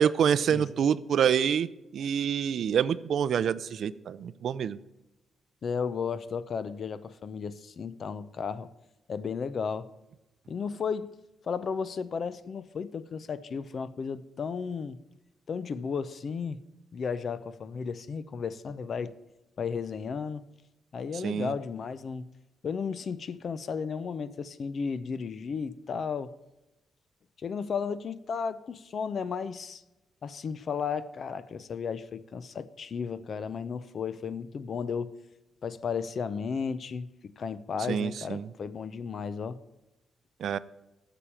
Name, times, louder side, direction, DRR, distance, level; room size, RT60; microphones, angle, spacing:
voice 1, 0.0-4.8 21.2-21.5 37.9-38.5 40.4-40.6, right 8 dB, 65° right, 0.4 m, -27 dB
voice 2, 5.6-8.7 9.1-9.9 10.5-11.1 11.4-15.0 15.5-16.6 16.9-19.1 19.6-20.4 20.9-22.3 22.6-26.3 27.4-29.8 30.2-35.1 35.6-39.6, left 6 dB, 50° left, 0.6 m, -34 dB
9.0 x 7.0 x 8.7 m
cardioid pair, 140°, 0 cm